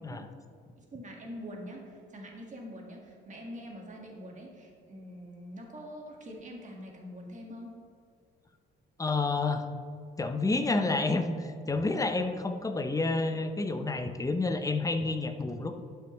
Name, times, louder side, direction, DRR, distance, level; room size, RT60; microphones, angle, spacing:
voice 1, 0.8-7.7, equal, 40° right, 0 dB, 1.7 m, -44 dB
voice 2, 9.0-9.6 10.2-15.8, left 3 dB, 15° left, 7 dB, 0.6 m, -29 dB
11.0 x 5.8 x 3.1 m, 2.3 s
cardioid pair, 90°, 20 cm